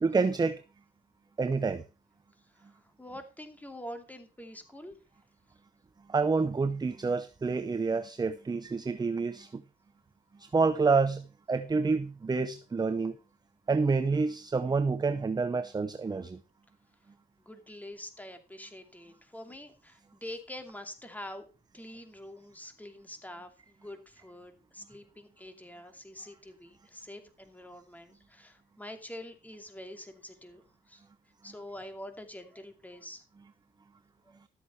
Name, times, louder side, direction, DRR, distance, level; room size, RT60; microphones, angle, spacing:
voice 1, 0.0-0.6 1.4-1.8 6.1-9.6 10.4-13.1 13.7-16.4, right 4 dB, 20° right, 0.7 m, -28 dB
voice 2, 2.5-5.0 17.4-21.5 21.7-31.0 31.4-33.2 34.2-34.4, left 1 dB, 10° left, 2.6 m, -46 dB
13.0 x 8.1 x 4.5 m
cardioid pair, 90°, 20 cm